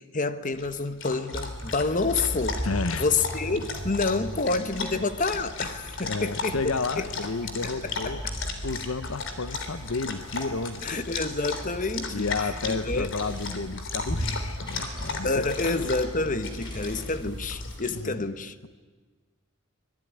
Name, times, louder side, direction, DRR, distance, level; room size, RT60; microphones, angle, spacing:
voice 1, 0.0-2.6 3.0-6.7 7.8-8.1 10.8-12.3 12.7-13.1 15.2-18.7, left 3 dB, 40° left, 1.2 m, -28 dB
Dog, 0.5-17.9, left 4 dB, 65° left, 3.4 m, -36 dB
sound 1, 1.3-17.8, equal, 20° left, 7.0 m, -38 dB
voice 2, 2.6-3.1 6.0-8.2 8.6-11.1 12.1-15.9 16.2-16.4 17.9-18.3, left 3 dB, 85° left, 0.9 m, -32 dB
25.5 x 21.5 x 10.0 m
head